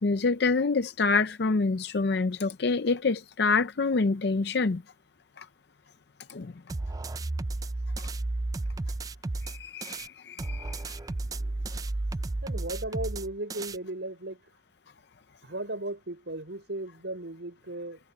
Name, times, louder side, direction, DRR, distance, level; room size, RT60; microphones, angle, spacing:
voice 1, 0.0-4.8 5.4-5.5 6.3-6.5 9.4-10.9, left 4 dB, 60° left, 0.6 m, -27 dB
sound 1, 6.7-10.1 10.4-13.8, right 2 dB, 20° right, 0.3 m, -33 dB
voice 2, 12.4-14.4 15.4-18.0, right 2 dB, 70° right, 5.2 m, -36 dB
head